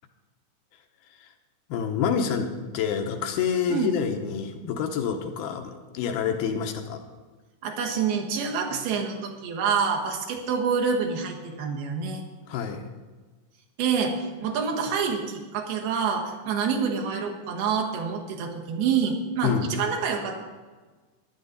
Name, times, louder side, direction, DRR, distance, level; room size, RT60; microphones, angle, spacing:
voice 1, 1.7-7.0 12.5-12.8 19.4-19.7, left 7 dB, 80° left, 4 dB, 2.7 m, -27 dB
voice 2, 7.6-12.2 13.8-20.4, right 6 dB, 80° right, 0 dB, 3.4 m, -27 dB
15.0 x 10.5 x 4.0 m, 1.3 s
omnidirectional pair, 4.5 m